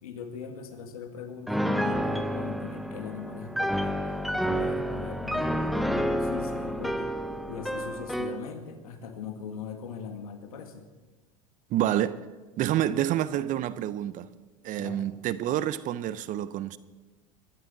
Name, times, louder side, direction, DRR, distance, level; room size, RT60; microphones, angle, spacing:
voice 1, 0.0-4.0 4.3-7.1 7.5-10.9 12.7-12.9 14.7-15.1, left 6 dB, 90° left, 1.9 m, -40 dB
Piano, 1.5-8.4, equal, ahead, 0.9 m, -29 dB
voice 2, 11.7-12.2 12.6-14.3 14.6-16.8, right 12 dB, 45° right, 0.7 m, -28 dB
22.0 x 12.0 x 4.1 m
hypercardioid pair, 95°, 18 cm